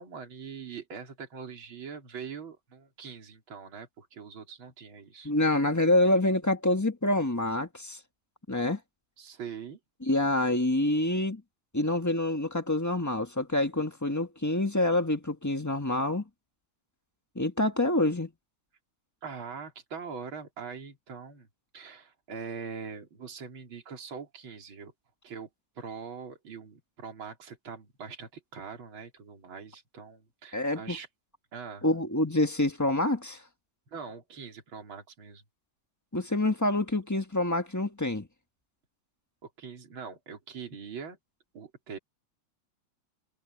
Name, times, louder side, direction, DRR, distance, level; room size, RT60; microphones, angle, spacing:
voice 1, 0.0-5.3 9.2-9.8 19.2-21.5 21.7-24.9 25.2-25.5 25.8-31.1 31.5-31.9 33.9-35.4 39.4-41.2 41.5-42.0, right 6 dB, 40° right, 4.2 m, -42 dB
voice 2, 5.2-8.0 8.5-8.8 10.0-11.4 11.7-16.2 17.3-18.3 30.5-31.0 31.8-33.4 36.1-38.3, left 1 dB, 20° left, 0.4 m, -26 dB
omnidirectional pair, 3.4 m